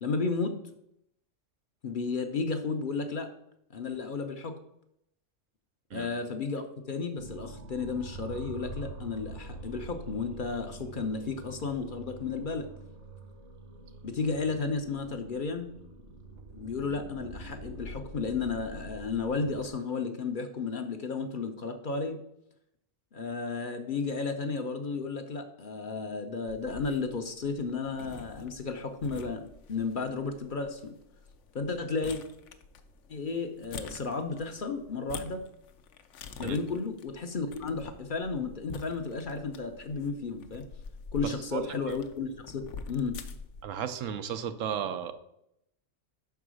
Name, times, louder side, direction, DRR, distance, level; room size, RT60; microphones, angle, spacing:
voice 1, 0.0-0.6 1.8-3.3 3.7-4.5 5.9-12.7 14.0-15.7 16.5-22.2 23.1-29.4 29.7-30.9 31.5-32.2 33.1-35.4 36.4-40.7 41.1-43.1, left 4 dB, 50° left, 6 dB, 0.7 m, -33 dB
sound 1, 7.2-19.7, right 2 dB, 65° right, 1.4 m, -45 dB
sound 2, 26.5-43.6, left 5 dB, 75° left, 1.0 m, -47 dB
voice 2, 41.2-41.7 43.6-45.1, right 8 dB, 85° right, 10 dB, 1.0 m, -34 dB
5.8 x 4.6 x 6.2 m, 0.78 s
omnidirectional pair, 1.3 m